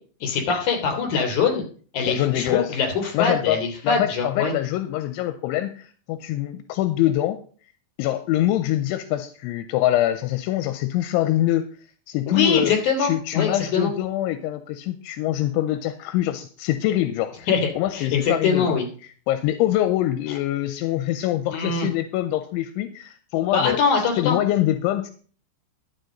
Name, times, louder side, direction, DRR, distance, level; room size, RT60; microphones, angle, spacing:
voice 1, 0.2-1.6 1.9-4.5 12.3-13.9 17.5-18.9 21.5-21.9 23.5-24.4, left 5 dB, 45° left, 3 dB, 4.3 m, -23 dB
voice 2, 2.1-2.7 3.1-3.6 3.8-7.4 8.0-11.7 12.1-12.7 13.0-17.5 17.8-18.8 19.3-23.8 24.2-25.1, left 13 dB, 85° left, 10 dB, 3.0 m, -24 dB
12.0 x 8.2 x 5.1 m, 0.43 s
omnidirectional pair, 5.5 m